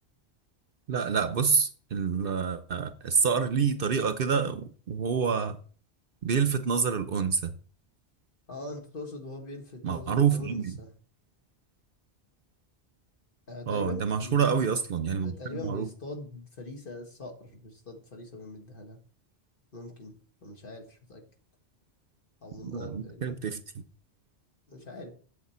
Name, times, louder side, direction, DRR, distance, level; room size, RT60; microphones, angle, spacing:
voice 1, 0.9-5.6 6.2-7.5 9.8-10.8 13.7-15.9 22.6-23.8, right 6 dB, 55° right, 0.8 m, -27 dB
voice 2, 8.5-10.9 13.5-14.5 15.2-19.0 19.7-20.1 20.4-21.2 22.4-23.3 24.7-25.1, left 2 dB, 50° left, 1.8 m, -42 dB
8.3 x 7.1 x 4.3 m
omnidirectional pair, 1.2 m